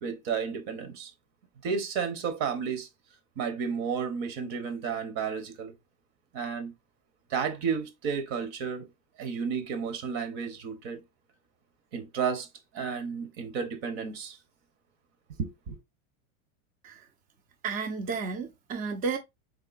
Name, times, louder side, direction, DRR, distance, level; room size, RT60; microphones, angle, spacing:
voice 1, 0.0-1.1 1.6-2.9 3.4-5.7 6.3-6.7 7.3-8.9 9.2-11.0 11.9-12.5 12.7-14.4 15.4-15.8, right 6 dB, 55° right, 0.9 m, -32 dB
voice 2, 17.6-19.2, right 5 dB, 20° right, 0.4 m, -32 dB
3.7 x 3.6 x 2.4 m
supercardioid pair, 120°, 40 cm